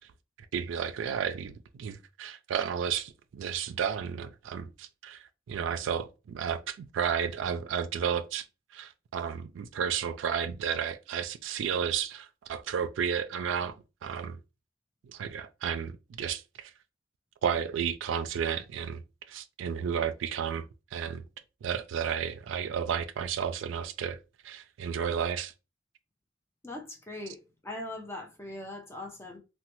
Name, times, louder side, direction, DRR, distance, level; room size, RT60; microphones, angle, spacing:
voice 1, 0.5-8.4 8.7-13.7 14.0-14.4 15.0-16.7 17.4-19.0 19.3-20.7 20.9-21.2 21.6-24.2 24.4-25.5, right 7 dB, 75° right, 0.3 m, -32 dB
voice 2, 26.6-29.4, left 1 dB, 15° left, 0.4 m, -41 dB
3.1 x 2.1 x 2.9 m
head